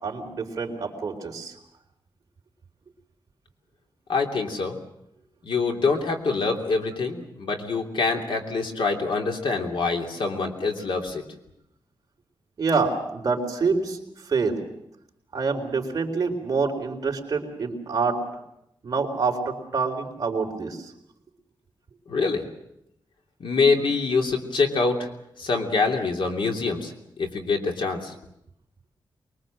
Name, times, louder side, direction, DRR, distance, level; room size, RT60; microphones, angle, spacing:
voice 1, 0.0-1.5 12.6-14.0 14.2-14.6 15.3-18.2 18.8-20.9, right 4 dB, 45° right, 1 dB, 4.0 m, -26 dB
voice 2, 4.1-4.8 5.4-11.2 22.1-22.4 23.4-25.1 25.4-28.1, left 4 dB, 70° left, 2 dB, 3.1 m, -25 dB
24.0 x 22.5 x 7.7 m, 0.80 s
wide cardioid pair, 170°, 9 cm